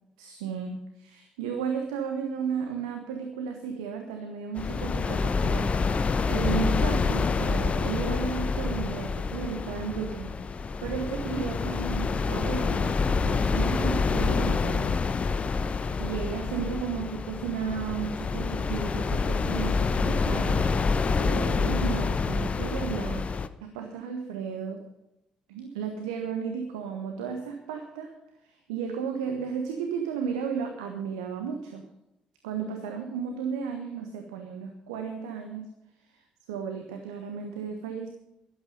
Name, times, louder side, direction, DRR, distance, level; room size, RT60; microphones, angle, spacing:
voice 1, 0.2-6.0 6.3-15.1 15.7-20.9 21.2-23.3 23.6-24.8 25.5-28.1 28.4-31.8 32.4-35.7 36.1-36.2 36.5-38.1, right 6 dB, 75° right, 4 dB, 1.3 m, -34 dB
sound 1, 4.6-23.5, left 4 dB, 40° left, 0.9 m, -27 dB
14.0 x 11.5 x 5.4 m, 0.88 s
figure-of-eight pair, 45°, 3 cm